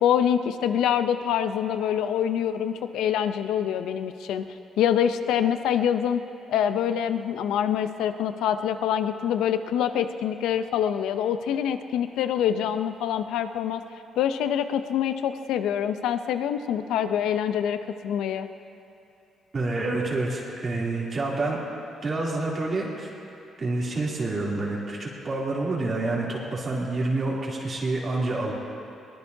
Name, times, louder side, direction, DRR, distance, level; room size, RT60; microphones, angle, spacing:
voice 1, 0.0-4.4 4.8-6.2 6.5-13.8 14.2-17.8 18.0-18.5, left 9 dB, 85° left, 9 dB, 0.6 m, -25 dB
voice 2, 19.5-21.6 22.0-23.1 23.6-28.5, right 2 dB, 40° right, -5 dB, 3.0 m, -28 dB
22.5 x 19.5 x 2.8 m, 2.7 s
cardioid pair, 90°, 0 cm